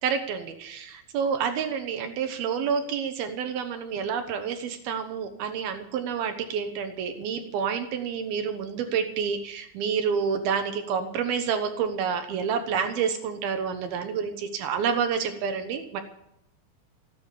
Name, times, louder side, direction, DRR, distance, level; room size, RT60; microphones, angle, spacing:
voice 1, 0.0-16.0, right 6 dB, 80° right, 7 dB, 3.1 m, -28 dB
17.0 x 9.3 x 8.4 m, 0.80 s
omnidirectional pair, 4.3 m